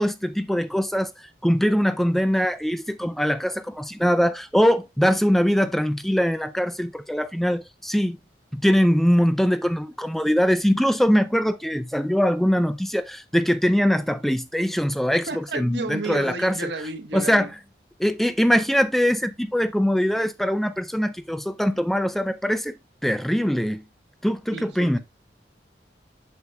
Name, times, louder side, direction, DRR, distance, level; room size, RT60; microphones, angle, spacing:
voice 1, 0.0-8.2 8.5-16.6 17.1-17.5 18.0-22.7 23.0-23.8 24.2-25.0, equal, ahead, 0.4 m, -22 dB
voice 2, 15.3-17.5 24.5-25.0, right 3 dB, 80° right, 1.3 m, -32 dB
8.0 x 7.0 x 2.3 m
head